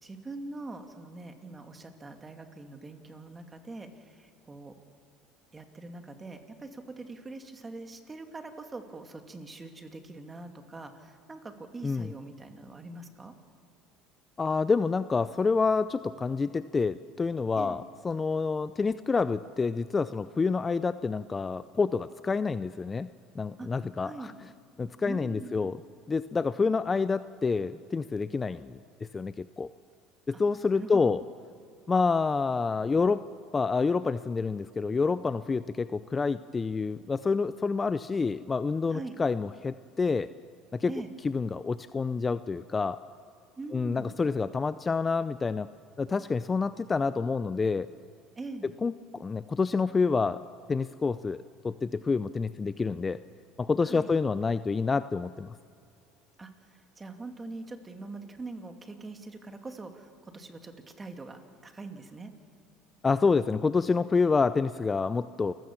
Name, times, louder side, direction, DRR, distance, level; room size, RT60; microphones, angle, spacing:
voice 1, 0.0-4.7 5.5-13.3 17.5-17.8 23.6-23.7 24.0-24.3 25.0-25.5 30.3-30.4 30.7-31.2 38.9-39.1 40.9-41.1 43.6-44.2 48.4-48.7 53.8-54.1 56.4-62.3, right 3 dB, 20° right, 5 dB, 2.4 m, -43 dB
voice 2, 14.4-23.1 23.3-24.3 24.8-25.8 26.1-28.8 29.1-29.7 30.3-31.2 31.9-33.3 33.5-40.3 40.7-40.9 41.2-43.0 43.7-45.7 46.0-47.9 48.8-50.4 50.7-53.2 53.6-55.5 63.0-65.5, left 4 dB, 25° left, 14 dB, 0.5 m, -28 dB
29.0 x 15.5 x 7.3 m, 2.3 s
supercardioid pair, 95°, 0 cm